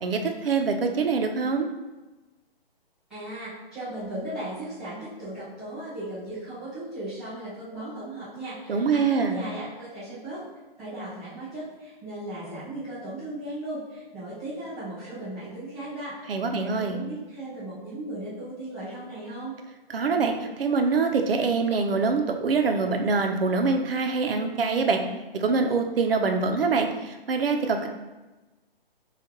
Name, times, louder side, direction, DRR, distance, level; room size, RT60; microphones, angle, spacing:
voice 1, 0.0-1.7 8.7-9.4 16.3-17.0 19.9-25.0 25.3-27.9, right 4 dB, 75° right, 4 dB, 0.7 m, -24 dB
voice 2, 3.1-10.4 10.8-19.5, right 1 dB, ahead, -18 dB, 0.3 m, -36 dB
6.5 x 2.5 x 2.9 m, 1.1 s
hypercardioid pair, 140°, 29 cm